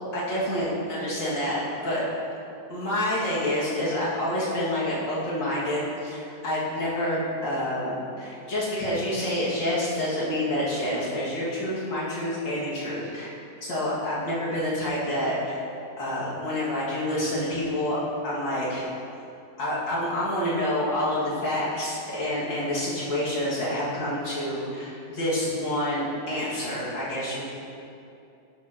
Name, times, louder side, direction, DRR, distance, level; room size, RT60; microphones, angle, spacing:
voice 1, 0.1-2.0 2.7-13.3 13.6-15.6 16.0-18.0 18.2-18.9 19.6-27.4, left 1 dB, 75° left, -8 dB, 2.7 m, -28 dB
11.5 x 6.8 x 2.9 m, 2.7 s
omnidirectional pair, 2.0 m